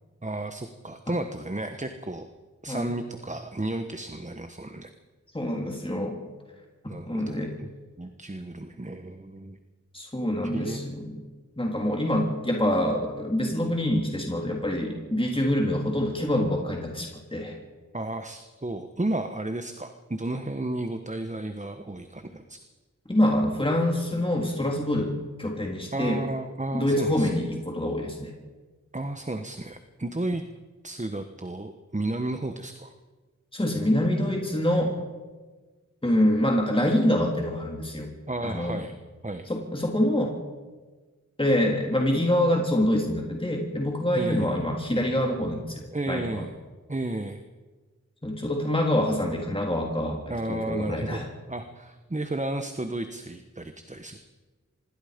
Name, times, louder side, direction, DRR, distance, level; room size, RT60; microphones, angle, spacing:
voice 1, 0.2-2.3 2.6-4.9 6.9-7.7 8.0-9.6 10.5-10.8 17.9-22.6 25.9-27.3 28.9-30.4 30.8-32.9 38.3-39.0 39.2-39.5 44.1-44.5 45.9-46.5 46.9-47.4 50.3-51.2 51.5-54.2, right 2 dB, 25° right, 7 dB, 1.2 m, -33 dB
voice 2, 5.3-6.2 7.1-7.5 9.9-11.2 11.6-17.6 23.1-25.1 25.4-26.2 26.7-28.3 33.5-34.9 36.0-38.1 38.4-38.8 39.5-40.3 41.4-46.5 48.2-51.3, left 1 dB, 15° left, 0 dB, 3.3 m, -26 dB
26.0 x 20.5 x 5.2 m, 1.3 s
wide cardioid pair, 60°, 31 cm